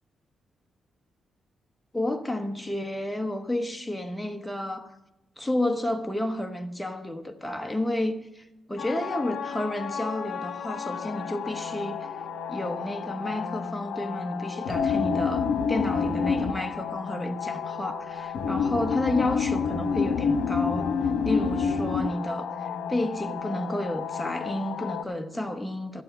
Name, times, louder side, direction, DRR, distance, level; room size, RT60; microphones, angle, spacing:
voice 1, 1.9-4.9 5.4-12.1 12.5-20.9 21.2-26.0, left 1 dB, 5° left, 1.0 m, -31 dB
sound 1, 8.8-25.0, left 6 dB, 80° left, 1.1 m, -30 dB
sound 2, 14.7-18.3, left 7 dB, 50° left, 3.6 m, -37 dB
13.5 x 8.4 x 8.1 m
cardioid pair, 130°, 0 cm